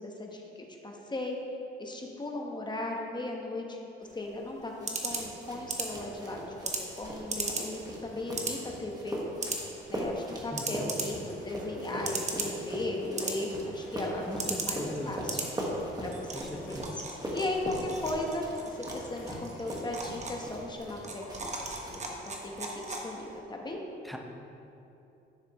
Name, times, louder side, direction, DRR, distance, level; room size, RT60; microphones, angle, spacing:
voice 1, 0.0-1.4 1.8-3.9 4.1-9.2 9.9-15.4 16.0-17.0 17.3-21.5 21.9-23.8, left 2 dB, 20° left, 1 dB, 1.1 m, -37 dB
sound 1, 4.0-23.4, right 3 dB, 35° right, 1.2 m, -39 dB
sound 2, 4.8-21.6 21.8-22.5, equal, 20° right, 1.6 m, -40 dB
voice 2, 10.5-10.9 14.3-15.1 16.3-16.9 24.0-24.2, equal, ahead, 2 dB, 0.9 m, -40 dB
sound 3, 11.2-19.4, left 2 dB, 85° left, 1.6 m, -51 dB
11.0 x 6.5 x 3.1 m, 2.8 s
cardioid pair, 90°, 20 cm